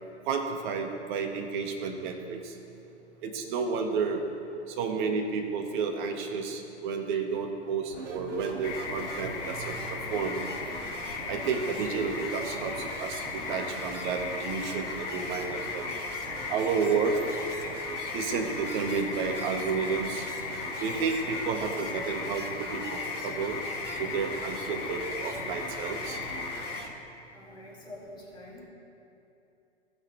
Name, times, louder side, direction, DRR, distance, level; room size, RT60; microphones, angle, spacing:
voice 1, 0.3-2.5 3.2-4.2 4.8-10.4 11.3-13.2 13.5-15.8 16.5-17.2 18.1-20.3 20.8-23.6 24.0-26.2, right 5 dB, 40° right, 3 dB, 1.5 m, -31 dB
sound 1, 7.9-26.9, right 3 dB, 80° right, 1.9 m, -42 dB
sound 2, 8.6-26.8, left 5 dB, 30° left, 1.1 m, -37 dB
voice 2, 27.3-28.7, left 1 dB, 10° left, -6 dB, 2.6 m, -46 dB
18.5 x 6.2 x 3.3 m, 2.8 s
hypercardioid pair, 125°, 35 cm